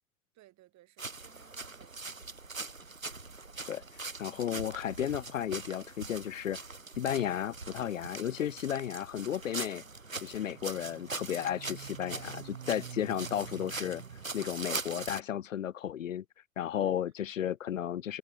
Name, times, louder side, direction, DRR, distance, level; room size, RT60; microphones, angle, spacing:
voice 1, 0.3-2.2 16.8-16.9, right 16 dB, 45° right, 5.8 m, -61 dB
sound 1, 1.0-15.2, right 3 dB, 90° right, 2.4 m, -42 dB
voice 2, 3.7-6.6 7.0-9.8 10.2-14.0 14.3-16.2 16.6-18.2, left 10 dB, 75° left, 1.1 m, -34 dB
sound 2, 10.3-14.2, right 10 dB, 75° right, 2.9 m, -48 dB
figure-of-eight pair, 75°, 39 cm